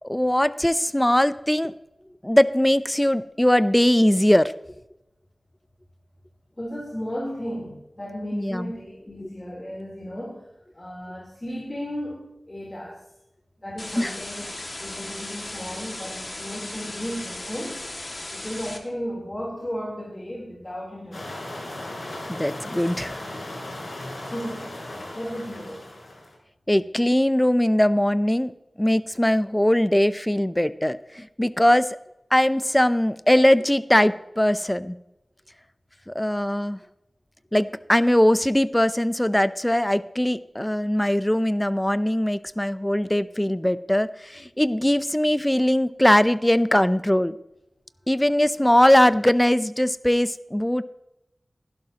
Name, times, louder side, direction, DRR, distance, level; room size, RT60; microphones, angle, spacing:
voice 1, 0.0-1.7 2.2-4.5 8.3-8.7 14.0-14.1 22.3-23.2 26.7-28.5 28.8-32.0 32.3-35.0 36.1-36.8 37.5-47.4 48.1-50.8, left 1 dB, 15° left, 14 dB, 0.5 m, -21 dB
voice 2, 6.6-10.5 10.7-13.0 13.6-14.5 14.8-17.9 18.3-21.4 24.3-24.8 25.1-25.9, equal, 35° left, -3 dB, 3.4 m, -34 dB
sound 1, 13.8-18.8, left 2 dB, 50° left, 2.0 m, -36 dB
sound 2, 21.1-26.4, left 1 dB, 85° left, 4.2 m, -37 dB
16.5 x 11.5 x 2.9 m, 0.88 s
cardioid pair, 40°, 0 cm